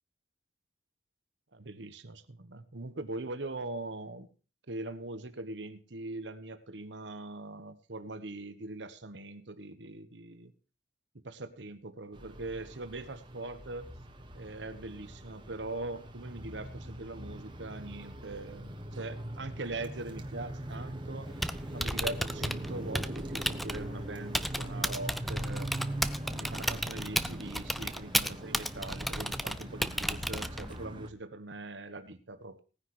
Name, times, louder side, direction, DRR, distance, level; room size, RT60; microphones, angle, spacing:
voice 1, 1.5-4.3 4.7-10.5 11.2-13.9 14.3-21.3 21.7-25.7 26.3-32.6, right 2 dB, 80° right, 10 dB, 1.3 m, -41 dB
sound 1, 12.1-31.1, right 1 dB, 25° right, 1.5 m, -42 dB
Typing, 21.3-30.8, equal, ahead, 0.5 m, -34 dB
18.5 x 9.9 x 3.2 m, 0.36 s
head